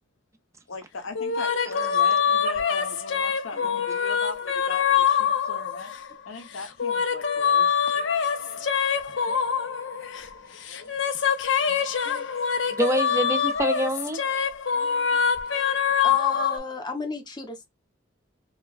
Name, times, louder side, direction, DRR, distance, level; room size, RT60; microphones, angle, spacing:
voice 1, 0.7-5.9 6.3-8.6 9.0-9.9 10.2-10.9 12.3-12.4 15.6-15.7, left 3 dB, 80° left, 0.9 m, -40 dB
sound 1, 1.2-6.1 6.6-10.3 10.7-16.6, left 7 dB, 65° left, 0.6 m, -24 dB
voice 2, 12.6-14.3 14.8-15.0, right 1 dB, 15° right, 0.4 m, -27 dB
voice 3, 16.0-17.7, left 4 dB, 20° left, 0.7 m, -33 dB
4.3 x 2.2 x 2.4 m
head